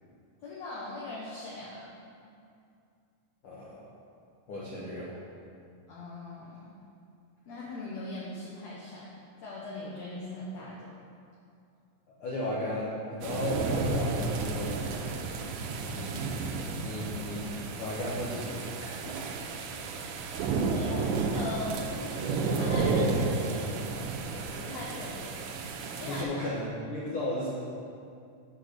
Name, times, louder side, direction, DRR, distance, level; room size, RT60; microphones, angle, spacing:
voice 1, 0.4-1.9 5.9-6.7 7.5-9.1 9.4-10.8 20.7-24.1 24.6-25.5 26.0-26.4, left 2 dB, 65° left, -5 dB, 1.8 m, -40 dB
voice 2, 3.4-3.8 4.5-5.1 12.2-14.8 15.9-16.2 16.8-17.4 17.8-19.2 26.1-27.5, left 1 dB, 90° left, -7 dB, 1.2 m, -35 dB
sound 1, 13.2-26.2, right 4 dB, 80° right, 2.1 m, -32 dB
6.3 x 5.4 x 6.4 m, 2.4 s
omnidirectional pair, 3.8 m